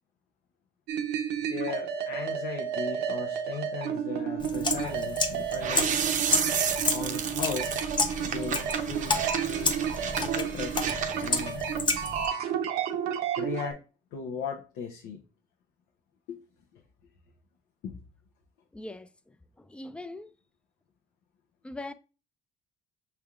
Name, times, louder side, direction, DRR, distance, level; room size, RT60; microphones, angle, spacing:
sound 1, 0.9-13.7, right 8 dB, 85° right, 0.8 m, -32 dB
voice 1, 1.4-5.9 6.9-7.7 8.2-9.7 10.2-10.7 11.2-11.6 13.4-13.8 14.1-15.2 16.3-16.4 16.7-16.8 17.8-18.0, left 6 dB, 90° left, 0.8 m, -37 dB
sound 2, 4.4-12.3, left 3 dB, 25° left, 0.7 m, -31 dB
sound 3, 5.6-11.4, right 7 dB, 50° right, 0.6 m, -32 dB
voice 2, 18.7-20.3 21.6-21.9, left 2 dB, 5° left, 0.3 m, -41 dB
5.8 x 3.4 x 2.4 m
cardioid pair, 110°, 17 cm